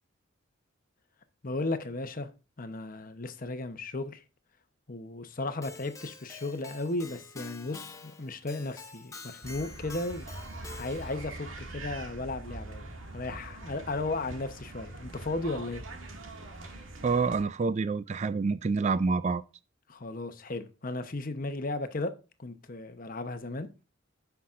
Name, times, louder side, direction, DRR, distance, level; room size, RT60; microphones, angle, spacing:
voice 1, 1.4-2.3 2.6-4.2 4.9-10.3 10.8-15.8 19.9-22.1 22.4-23.7, left 2 dB, 45° left, 0.9 m, -35 dB
Keyboard (musical), 5.6-11.3, left 3 dB, 15° left, 0.8 m, -47 dB
sound 1, 9.4-17.4, right 2 dB, 90° right, 2.0 m, -43 dB
voice 2, 17.0-19.4, right 4 dB, 35° right, 0.3 m, -27 dB
15.5 x 5.8 x 2.5 m
head